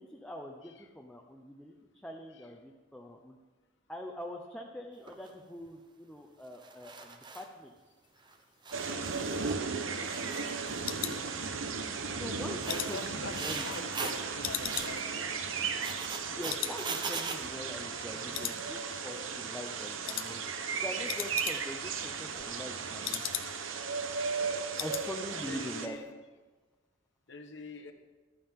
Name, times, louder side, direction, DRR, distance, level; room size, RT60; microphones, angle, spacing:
voice 1, 0.0-1.8 2.0-3.4 3.9-7.7 12.2-12.6 12.9-13.7 16.3-20.5 20.8-23.3 24.8-26.0, left 1 dB, 5° left, 0 dB, 0.7 m, -43 dB
voice 2, 0.6-0.9 2.0-2.1 2.3-2.5 11.0-11.5 12.6-15.3 25.3-26.1 27.3-27.9, left 3 dB, 65° left, 6 dB, 1.2 m, -44 dB
sound 1, 5.1-5.3 6.5-7.5 8.3-8.4 8.6-9.7 10.0-11.0 11.3-11.6 12.4-14.2 14.6-15.0 15.7-17.4, right 4 dB, 25° right, 0.8 m, -40 dB
sound 2, 8.7-25.9, right 5 dB, 90° right, 1.0 m, -36 dB
sound 3, 9.2-11.9 12.3-14.1 14.4-16.2 16.5-16.8 17.1-17.2 17.7-18.1 18.3-19.1 19.4-19.7 20.1-20.3 20.6-20.7 20.9-21.9 22.2-23.8 24.1-24.2 24.5-25.1 25.4-25.6 25.9-26.0, left 13 dB, 80° left, 0.5 m, -39 dB
14.5 x 12.0 x 3.7 m, 1.3 s
head